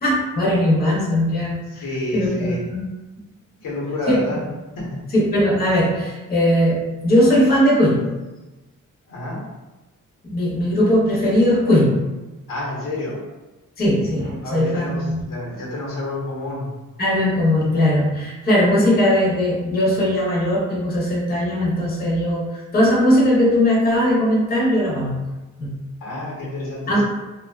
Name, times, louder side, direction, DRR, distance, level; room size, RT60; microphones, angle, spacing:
voice 1, 0.0-1.8 2.1-2.9 3.2-3.3 4.1-4.2 5.1-8.1 10.2-12.0 13.8-15.2 17.0-25.3 25.6-25.9 26.9-27.0, left 1 dB, 30° left, -5 dB, 0.6 m, -19 dB
voice 2, 1.7-2.6 3.6-4.4 4.8-5.0 9.1-9.4 12.5-13.2 14.4-16.8 26.0-27.0, left 1 dB, 80° left, -5 dB, 0.9 m, -29 dB
2.5 x 2.3 x 2.2 m, 1.1 s
wide cardioid pair, 155°, 32 cm